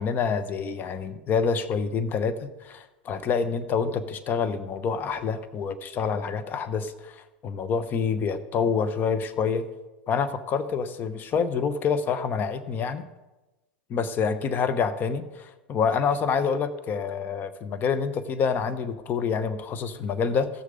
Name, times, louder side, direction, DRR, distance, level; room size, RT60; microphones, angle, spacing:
voice 1, 0.0-9.6 10.1-13.0 13.9-20.5, left 6 dB, 35° left, 12 dB, 0.9 m, -27 dB
15.5 x 6.5 x 5.1 m, 1.1 s
hypercardioid pair, 95°, 6 cm